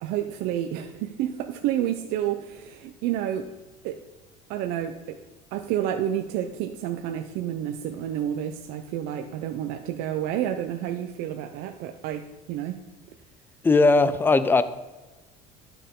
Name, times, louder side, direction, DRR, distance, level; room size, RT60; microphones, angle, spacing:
voice 1, 0.0-3.5 3.8-4.0 4.5-5.2 5.5-12.8, right 11 dB, 70° right, 5 dB, 0.7 m, -30 dB
voice 2, 13.6-14.6, left 3 dB, 10° left, 13 dB, 0.5 m, -18 dB
12.5 x 6.9 x 3.7 m, 1.1 s
cardioid pair, 150°, 17 cm